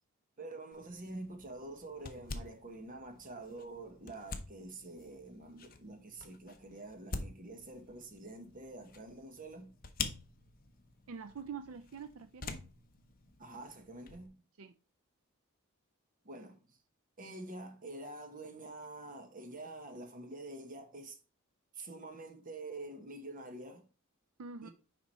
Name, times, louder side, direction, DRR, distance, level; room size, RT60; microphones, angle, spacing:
voice 1, 0.4-9.7 13.4-14.4 16.2-16.8 17.2-21.2 21.7-23.9 24.6-24.7, right 2 dB, 40° right, 1.2 m, -47 dB
sound 1, 0.7-14.3, left 4 dB, 45° left, 0.8 m, -47 dB
voice 2, 11.1-12.6 14.6-14.7 24.4-24.7, right 5 dB, 75° right, 0.4 m, -45 dB
6.1 x 5.0 x 4.2 m
head